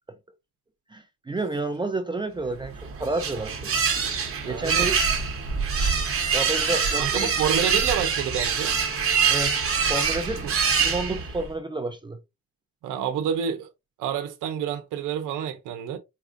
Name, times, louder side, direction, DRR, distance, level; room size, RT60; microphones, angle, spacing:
voice 1, 0.9-4.0 4.5-5.0 6.2-7.3 9.3-9.6 9.9-12.2, right 2 dB, 15° right, 0.6 m, -30 dB
sound 1, 2.6-11.5, right 6 dB, 45° right, 1.1 m, -25 dB
voice 2, 4.4-4.9 6.9-8.7 10.4-10.5 12.8-13.7 14.0-16.0, right 8 dB, 90° right, 0.7 m, -28 dB
4.2 x 2.4 x 2.5 m
cardioid pair, 90°, 30 cm